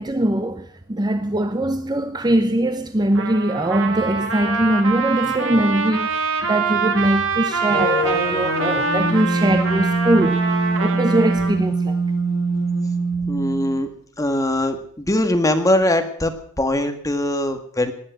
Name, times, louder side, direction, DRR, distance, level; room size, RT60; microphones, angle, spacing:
voice 1, 0.0-6.1 6.4-10.4 10.8-12.0, right 1 dB, 20° right, 0.8 m, -21 dB
Trumpet, 3.1-11.6, right 5 dB, 65° right, 2.5 m, -25 dB
sound 1, 7.7-13.8, right 2 dB, 65° left, 3.6 m, -23 dB
voice 2, 13.3-13.9 14.2-16.3 16.6-17.9, left 1 dB, 15° left, 1.8 m, -21 dB
19.0 x 8.9 x 7.9 m
head